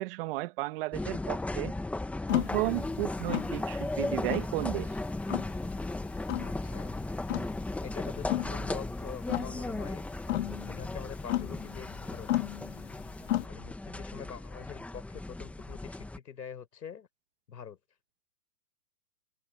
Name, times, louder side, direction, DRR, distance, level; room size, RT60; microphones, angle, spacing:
voice 1, 0.0-1.7 2.3-5.0, right 21 dB, 35° right, 1.5 m, -33 dB
sound 1, 0.9-16.2, left 2 dB, 5° left, 1.6 m, -36 dB
sound 2, 2.3-13.5, left 15 dB, 45° left, 1.8 m, -35 dB
voice 2, 6.4-6.9 7.8-10.0 10.7-12.3 13.5-17.1 17.5-17.8, left 7 dB, 75° left, 5.1 m, -44 dB
hypercardioid pair, 140°, 50 cm